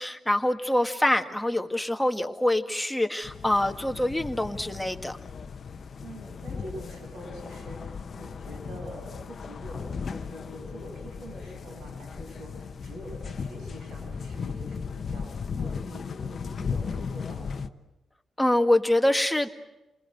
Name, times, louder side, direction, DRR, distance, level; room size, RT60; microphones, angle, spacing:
voice 1, 0.0-5.2 18.4-19.5, left 1 dB, 5° left, 5 dB, 1.9 m, -25 dB
sound 1, 3.2-17.7, left 5 dB, 55° left, 1.0 m, -36 dB
voice 2, 6.0-17.7, right 1 dB, 85° right, 2 dB, 8.0 m, -45 dB
29.0 x 20.5 x 7.9 m, 0.96 s
cardioid pair, 85°, 0 cm